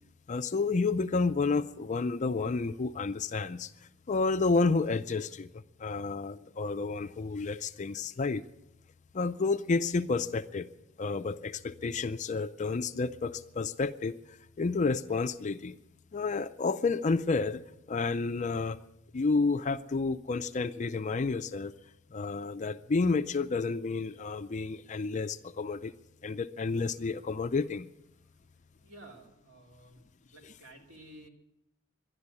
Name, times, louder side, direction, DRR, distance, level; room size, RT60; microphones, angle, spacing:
voice 1, 0.3-3.7 4.1-5.5 5.8-8.5 9.1-10.7 11.0-14.1 14.6-15.8 16.1-17.6 17.9-18.8 19.1-21.7 22.1-25.9 26.2-27.9, left 4 dB, 40° left, 11 dB, 0.4 m, -30 dB
voice 2, 28.8-30.0 30.3-31.3, right 1 dB, 75° right, 1 dB, 2.8 m, -52 dB
12.0 x 11.0 x 9.7 m, 0.88 s
head